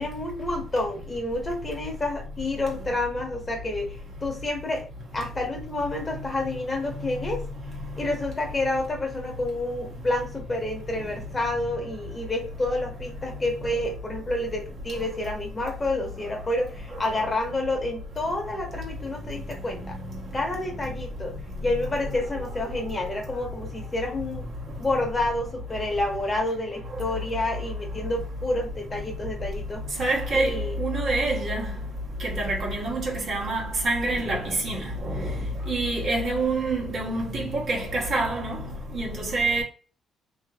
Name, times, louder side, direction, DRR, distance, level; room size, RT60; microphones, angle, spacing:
voice 1, 0.0-4.9 5.1-7.5 8.0-20.0 20.3-21.3 21.6-24.5 24.8-29.8 30.3-30.8, left 2 dB, 25° left, 0.9 m, -29 dB
voice 2, 30.0-30.5 30.8-31.6 32.2-35.2 35.7-38.6 38.9-39.6, right 2 dB, 60° right, 1.0 m, -26 dB
2.7 x 2.6 x 2.3 m
cardioid pair, 90°, 0 cm